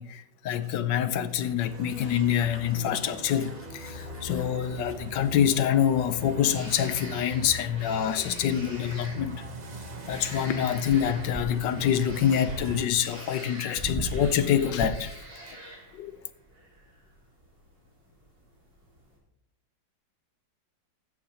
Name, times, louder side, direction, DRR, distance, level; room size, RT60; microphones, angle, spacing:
voice 1, 0.0-9.4 10.1-15.1 15.9-16.2, left 9 dB, 75° left, 1.3 m, -26 dB
sound 1, 0.5-5.0 7.4-7.5 9.5-15.3, right 1 dB, 10° left, 1.2 m, -41 dB
sound 2, 1.0-19.2, right 1 dB, 70° right, 5.1 m, -48 dB
sound 3, 1.6-12.8, right 2 dB, 45° right, 0.5 m, -41 dB
15.0 x 11.5 x 2.8 m
omnidirectional pair, 2.0 m